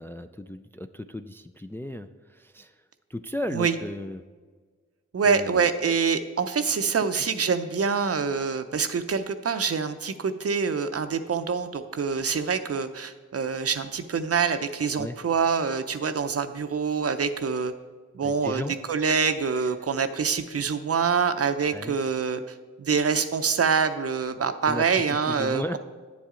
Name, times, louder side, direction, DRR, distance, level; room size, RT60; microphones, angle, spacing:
voice 1, 0.0-2.8 3.1-4.2 5.3-5.7 7.1-7.3 15.0-15.2 18.2-18.7 21.7-22.0 24.7-24.9 25.3-25.8, left 1 dB, 10° left, 8 dB, 0.3 m, -35 dB
voice 2, 5.1-17.7 18.1-18.6 18.9-22.4 22.8-25.8, right 5 dB, 50° right, 10 dB, 0.6 m, -25 dB
9.3 x 7.2 x 3.7 m, 1.5 s
cardioid pair, 55°, 31 cm